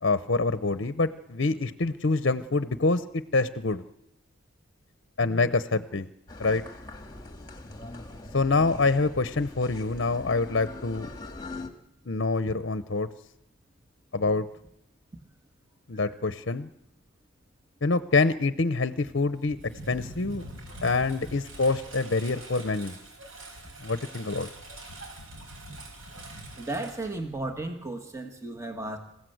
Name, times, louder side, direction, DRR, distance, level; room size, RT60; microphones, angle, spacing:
voice 1, 0.0-3.8 5.2-6.1 6.4-6.6 8.3-11.1 12.1-13.1 14.1-14.5 15.9-16.7 17.8-19.6 19.9-20.4 20.8-22.9 23.8-24.5, left 3 dB, 60° left, 12 dB, 0.8 m, -26 dB
sound 1, 6.3-11.7, left 2 dB, 20° left, 1.7 m, -42 dB
Engine, 19.3-27.8, right 1 dB, 85° right, 5.4 m, -44 dB
voice 2, 26.6-29.0, right 2 dB, 15° right, 5 dB, 1.6 m, -34 dB
26.5 x 16.0 x 8.0 m, 0.86 s
head